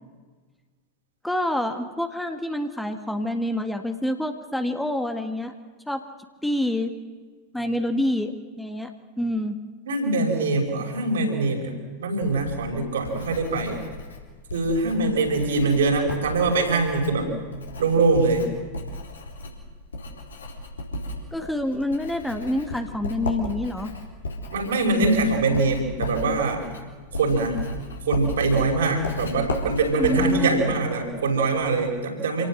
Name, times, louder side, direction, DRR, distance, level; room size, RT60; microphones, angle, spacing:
voice 1, 1.2-5.5 5.9-6.0 6.4-6.9 7.5-8.9 9.2-9.5 21.3-23.9 30.0-30.6, left 1 dB, 5° left, 6 dB, 1.6 m, -27 dB
voice 2, 9.9-13.8 14.5-17.3 17.8-18.5 24.5-26.6 27.2-27.6 28.1-32.5, right 3 dB, 65° right, 2 dB, 5.6 m, -23 dB
Writing, 12.2-31.7, left 1 dB, 70° left, 4.2 m, -35 dB
28.0 x 18.0 x 7.8 m, 1.4 s
figure-of-eight pair, 90°, 0 cm